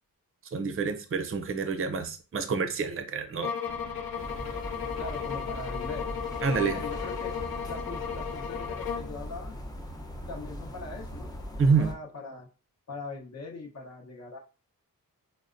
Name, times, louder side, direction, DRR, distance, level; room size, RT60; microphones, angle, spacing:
voice 1, 0.5-3.5 6.4-6.8 11.6-11.9, right 5 dB, 40° right, 8 dB, 0.5 m, -27 dB
sound 1, 3.4-9.2, left 7 dB, 80° left, 0.6 m, -35 dB
sound 2, 3.6-9.2, equal, 10° right, 0.9 m, -49 dB
sound 3, 4.2-11.9, equal, 10° left, 0.6 m, -40 dB
voice 2, 5.0-6.1 6.5-7.3 7.7-9.6 10.3-11.4 11.6-12.5 12.9-14.4, left 2 dB, 50° left, 0 dB, 0.9 m, -41 dB
5.4 x 2.1 x 2.5 m, 0.33 s
wide cardioid pair, 145°, 35 cm